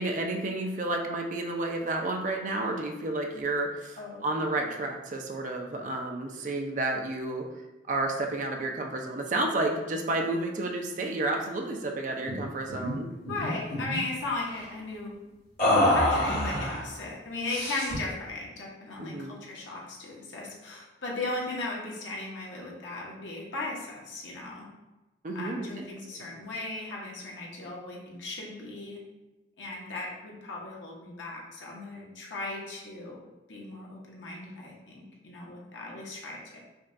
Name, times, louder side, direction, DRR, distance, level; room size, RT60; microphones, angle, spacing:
voice 1, 0.0-7.4 7.9-13.1 19.0-19.4 25.2-25.9, right 2 dB, 40° right, 2 dB, 0.4 m, -31 dB
voice 2, 4.0-4.3 13.3-15.1 15.9-24.7 25.3-29.0 29.6-36.6, left 2 dB, 80° left, -3 dB, 0.9 m, -37 dB
sound 1, 12.3-12.4 12.7-12.9 13.2-14.0 15.6-16.8 17.5-18.1, left 1 dB, 45° left, 1.3 m, -26 dB
5.2 x 2.2 x 2.6 m, 1.1 s
head